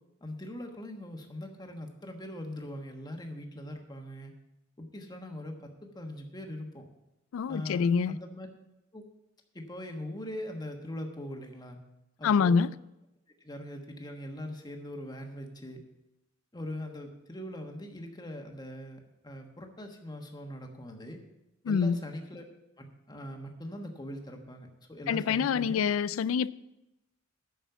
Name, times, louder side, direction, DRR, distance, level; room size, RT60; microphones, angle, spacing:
voice 1, 0.2-4.3 4.8-6.9 7.5-8.5 8.9-9.0 9.5-11.8 12.2-12.6 13.4-15.8 16.5-21.2 21.6-22.4 22.8-25.8, left 1 dB, 20° left, 1.3 m, -41 dB
voice 2, 7.3-8.2 12.2-12.7 21.7-22.0 25.1-26.5, left 6 dB, 75° left, 0.3 m, -26 dB
9.2 x 6.3 x 7.0 m
head